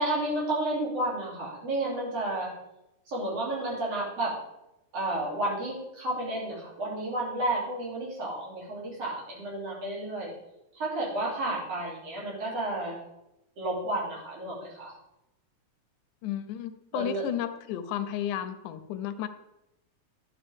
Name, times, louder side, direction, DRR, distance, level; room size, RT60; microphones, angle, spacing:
voice 1, 0.0-2.5 3.1-4.3 4.9-10.3 10.7-13.0 13.6-14.9 16.9-17.3, right 1 dB, 50° right, -5 dB, 3.9 m, -31 dB
voice 2, 16.2-19.3, left 10 dB, 85° left, 11 dB, 2.1 m, -33 dB
11.0 x 7.0 x 3.5 m, 0.88 s
omnidirectional pair, 3.5 m